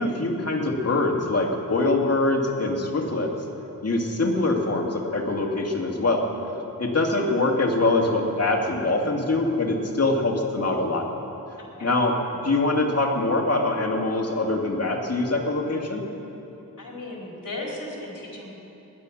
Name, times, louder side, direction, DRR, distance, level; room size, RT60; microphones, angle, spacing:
voice 1, 0.0-3.3 3.8-6.3 6.8-11.1 11.8-12.2 12.4-16.0, left 2 dB, 45° left, 0 dB, 2.4 m, -23 dB
voice 2, 11.6-11.9 16.8-18.5, left 2 dB, 65° left, -3 dB, 4.4 m, -36 dB
19.5 x 11.0 x 6.4 m, 3.0 s
cardioid pair, 55°, 35 cm